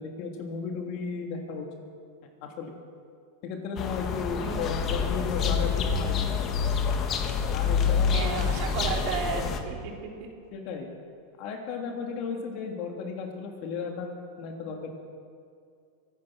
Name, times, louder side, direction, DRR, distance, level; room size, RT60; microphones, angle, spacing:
voice 1, 0.0-1.7 2.4-2.7 3.4-6.3 7.5-8.5 10.5-10.9 11.4-14.1 14.4-14.9, left 5 dB, 55° left, 2 dB, 3.0 m, -34 dB
sound 1, 3.8-9.6, left 6 dB, 35° left, 1.7 m, -27 dB
voice 2, 8.1-9.9, right 5 dB, 55° right, 0 dB, 3.6 m, -33 dB
23.5 x 9.8 x 6.2 m, 2.4 s
hypercardioid pair, 110°, 0 cm